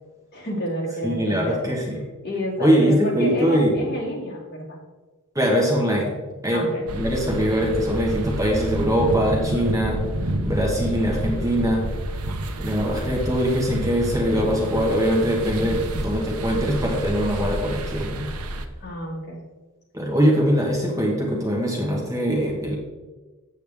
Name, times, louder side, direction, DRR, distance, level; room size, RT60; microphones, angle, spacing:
voice 1, 0.3-1.6 2.2-4.8 6.5-6.8 18.8-19.4, equal, 50° left, -4 dB, 2.5 m, -30 dB
voice 2, 1.0-2.0 2.6-3.8 5.3-6.1 6.4-10.0 10.4-11.9 12.6-18.3 19.9-22.7, equal, 15° right, -2 dB, 1.4 m, -22 dB
sound 1, 6.9-18.7, right 1 dB, 75° right, 0.8 m, -29 dB
8.3 x 8.1 x 3.5 m, 1.3 s
head